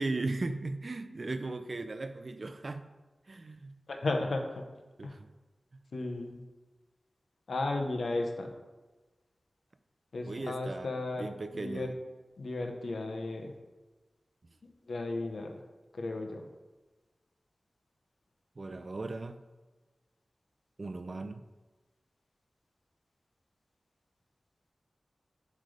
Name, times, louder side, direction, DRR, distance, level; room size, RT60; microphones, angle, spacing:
voice 1, 0.0-2.9 3.3-3.7 5.0-5.3 10.3-11.9 18.6-19.4 20.8-21.5, right 2 dB, 50° right, 10 dB, 0.4 m, -37 dB
voice 2, 3.9-4.6 5.0-5.1 5.9-6.4 7.5-8.5 10.1-11.9 12.4-13.5 14.9-15.6 15.9-16.5, left 2 dB, 90° left, 3 dB, 0.8 m, -34 dB
7.7 x 3.3 x 4.9 m, 1.2 s
wide cardioid pair, 90°, 0 cm